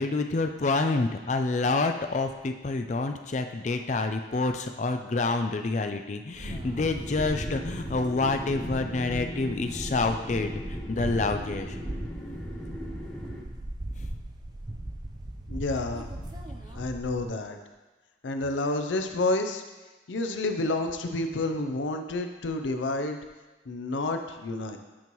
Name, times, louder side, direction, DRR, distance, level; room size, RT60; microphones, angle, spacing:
voice 1, 0.0-11.8, left 3 dB, 40° left, 6 dB, 0.4 m, -28 dB
sound 1, 6.3-17.2, right 1 dB, 25° right, 0.5 m, -38 dB
sound 2, 6.5-13.4, equal, 5° left, 0.8 m, -38 dB
voice 2, 15.5-16.3 16.7-17.6 18.2-19.6 20.1-23.2 23.7-24.8, left 2 dB, 85° left, 6 dB, 0.5 m, -29 dB
8.7 x 5.4 x 3.0 m, 1.2 s
head